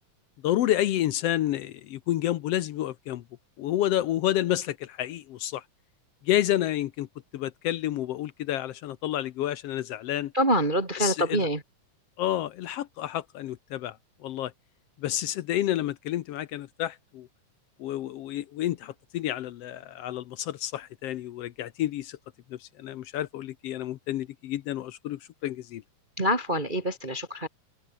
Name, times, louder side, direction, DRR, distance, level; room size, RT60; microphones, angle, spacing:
voice 1, 0.4-3.2 3.6-5.6 6.2-7.1 7.3-10.3 11.0-11.5 12.2-14.5 15.0-17.3 17.8-22.2 22.5-25.8, left 13 dB, 70° left, 1.6 m, -29 dB
voice 2, 10.3-11.6 26.2-27.5, equal, 20° right, 1.8 m, -25 dB
omnidirectional pair, 3.4 m